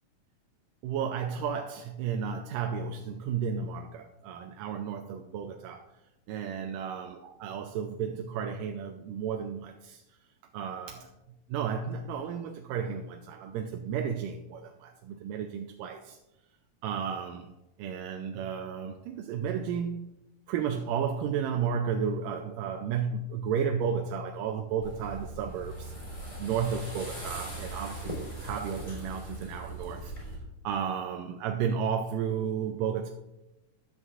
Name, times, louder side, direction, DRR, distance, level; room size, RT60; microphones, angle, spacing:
voice 1, 0.8-5.9 6.3-10.2 10.5-11.1 11.5-16.2 16.8-17.5 17.8-20.2 20.5-25.9 26.4-30.1 30.6-33.1, right 7 dB, 90° right, 3 dB, 2.3 m, -33 dB
sound 1, 24.8-30.4, right 1 dB, 10° left, 3.3 m, -40 dB
15.5 x 11.0 x 2.5 m, 0.95 s
omnidirectional pair, 3.7 m